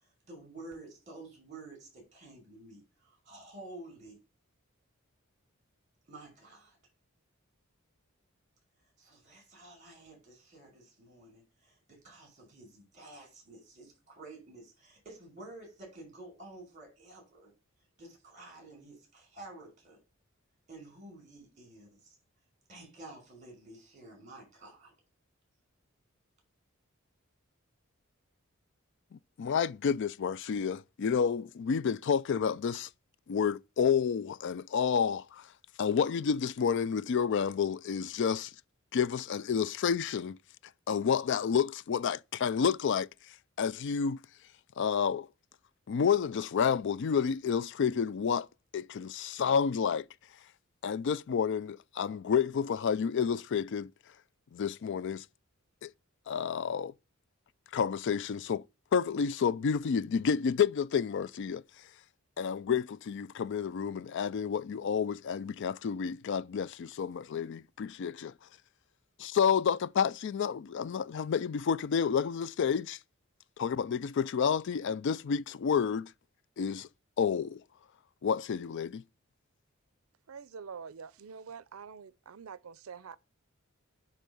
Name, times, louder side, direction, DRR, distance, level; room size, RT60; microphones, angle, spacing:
voice 1, 0.3-4.2 6.1-6.8 9.0-17.5 18.0-20.0 20.7-22.2 22.7-24.9, right 2 dB, 35° right, 5.8 m, -51 dB
voice 2, 29.1-32.9 33.3-35.5 35.8-38.5 38.9-40.4 40.9-43.1 43.6-44.2 44.8-45.3 45.9-48.5 48.7-50.0 50.8-53.9 54.5-55.2 55.8-55.9 56.3-56.9 57.7-58.6 58.9-61.6 62.4-68.3 69.2-73.0 73.6-76.1 76.6-76.9 77.2-77.6 78.2-79.0, left 7 dB, 60° left, 0.4 m, -30 dB
voice 3, 80.3-83.2, right 6 dB, 85° right, 0.5 m, -46 dB
9.9 x 3.7 x 6.8 m
head